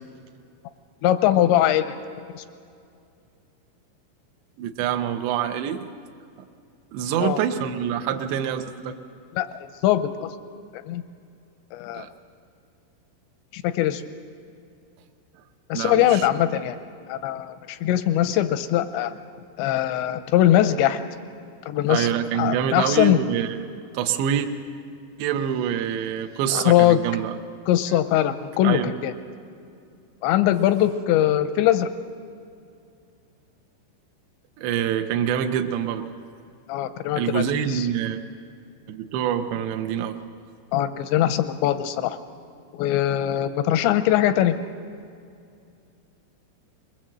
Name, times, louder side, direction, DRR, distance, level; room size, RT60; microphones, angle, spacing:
voice 1, 1.0-1.9 2.3-2.4 7.2-7.4 9.4-10.3 10.9-11.0 11.7-12.1 13.5-14.0 15.7-16.8 17.1-19.1 19.6-21.0 21.7-22.1 22.4-23.2 26.5-27.0 27.7-29.1 30.2-31.9 36.7-37.9 40.7-42.2 42.7-44.6, left 12 dB, 80° left, 11 dB, 2.6 m, -21 dB
voice 2, 4.6-5.8 6.9-9.0 11.9-12.1 15.7-16.3 21.9-23.6 23.9-24.5 25.2-27.4 28.6-29.0 34.6-36.1 37.1-38.2 38.9-40.2, right 9 dB, 75° right, 5 dB, 2.8 m, -26 dB
22.0 x 21.5 x 7.5 m, 2.4 s
omnidirectional pair, 5.7 m